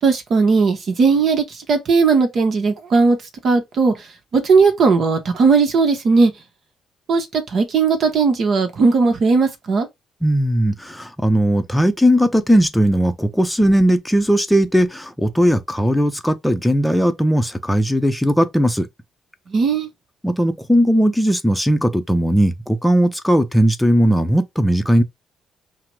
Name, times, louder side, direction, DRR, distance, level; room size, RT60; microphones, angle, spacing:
voice 1, 0.0-3.2 3.4-4.1 4.3-6.3 7.1-9.9 19.5-19.9, right 4 dB, 60° right, 1.0 m, -17 dB
voice 2, 10.2-18.9 20.2-25.0, equal, 5° left, 0.6 m, -17 dB
5.6 x 2.1 x 3.1 m
cardioid pair, 90°, 0 cm